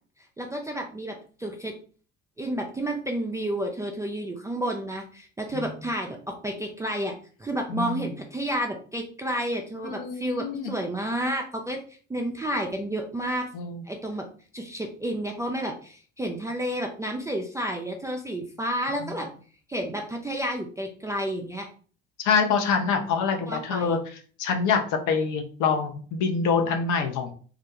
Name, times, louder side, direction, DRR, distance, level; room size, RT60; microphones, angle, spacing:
voice 1, 0.4-1.7 2.4-7.1 7.4-13.5 13.9-14.3 14.5-19.3 19.7-21.7 23.5-24.0, right 1 dB, 10° right, 1 dB, 0.3 m, -31 dB
voice 2, 7.7-8.1 9.8-10.7 13.5-13.8 19.0-19.1 22.2-24.0 24.4-27.3, left 5 dB, 55° left, 5 dB, 0.7 m, -25 dB
2.4 x 2.1 x 2.8 m, 0.42 s
hypercardioid pair, 60°, 36 cm